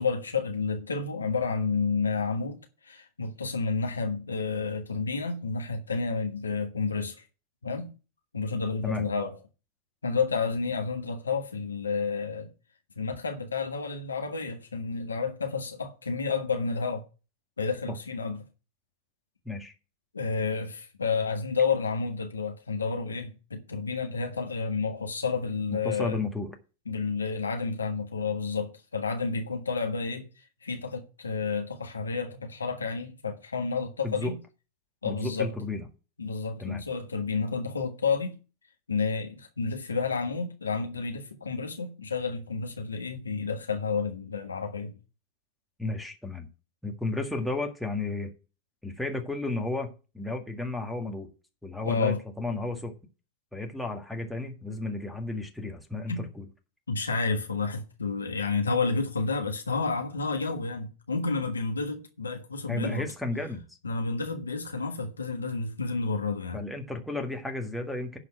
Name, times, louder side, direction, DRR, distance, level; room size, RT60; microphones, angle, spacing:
voice 1, 0.0-7.2 7.6-7.9 8.3-9.4 10.0-12.5 13.0-17.0 17.6-18.4 20.1-26.2 26.9-30.3 30.6-34.3 35.0-35.5 36.2-38.4 38.9-44.9 51.8-52.2 56.1-56.2 56.9-63.1 63.8-66.6, left 4 dB, 75° left, 1.5 m, -30 dB
voice 2, 25.8-26.6 34.0-34.3 35.0-35.8 36.6-36.8 45.8-46.5 46.8-48.3 48.8-51.3 51.6-52.9 53.5-56.4 62.7-63.6 66.5-68.2, left 2 dB, ahead, 1.8 m, -33 dB
11.0 x 4.1 x 7.7 m
figure-of-eight pair, 90°, 0 cm